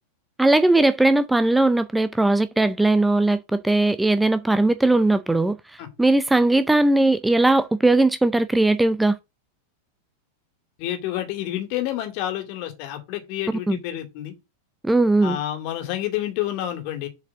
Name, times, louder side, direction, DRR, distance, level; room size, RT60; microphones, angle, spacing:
voice 1, 0.4-5.5 6.0-9.2 13.7-13.8 14.8-15.4, right 2 dB, 5° right, 0.5 m, -19 dB
voice 2, 10.8-14.3 15.2-17.1, left 13 dB, 45° left, 2.3 m, -29 dB
7.3 x 4.9 x 6.1 m
figure-of-eight pair, 90°, 0 cm